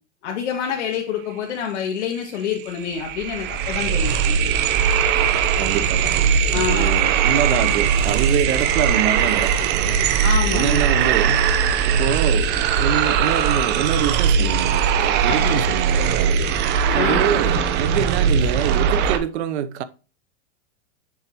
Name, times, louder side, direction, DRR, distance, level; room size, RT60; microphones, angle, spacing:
voice 1, 0.2-4.4 6.5-6.9 10.2-10.9 15.3-15.6 16.9-17.3, left 7 dB, 75° left, 1.8 m, -27 dB
sound 1, 2.2-2.3 2.5-19.2, right 7 dB, 30° right, 0.8 m, -20 dB
voice 2, 5.6-10.0 10.5-11.5 11.9-16.4 16.9-19.8, right 9 dB, 70° right, 0.9 m, -25 dB
7.4 x 5.9 x 2.9 m
supercardioid pair, 145°, 34 cm